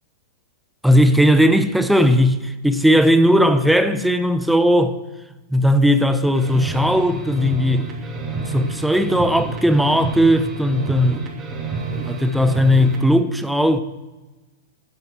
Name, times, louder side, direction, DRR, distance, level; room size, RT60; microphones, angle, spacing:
voice 1, 0.8-5.0 5.5-7.9 8.4-11.2 12.0-13.8, equal, ahead, 0.7 m, -17 dB
sound 1, 6.3-13.1, right 4 dB, 20° right, 2.7 m, -29 dB
13.0 x 8.8 x 4.5 m
figure-of-eight pair, 105°, 0 cm